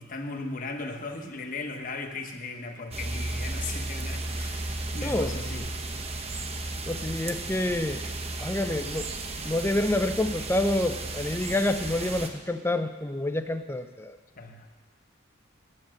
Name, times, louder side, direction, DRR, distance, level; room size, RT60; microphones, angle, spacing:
voice 1, 0.0-5.7 14.4-14.7, left 3 dB, 40° left, 4 dB, 1.1 m, -37 dB
sound 1, 2.9-12.3, right 2 dB, 30° right, 0.8 m, -34 dB
voice 2, 5.0-5.7 6.9-8.0 8.4-9.1 9.4-14.2, left 1 dB, 10° left, 8 dB, 0.5 m, -28 dB
9.9 x 8.7 x 7.5 m, 1.3 s
head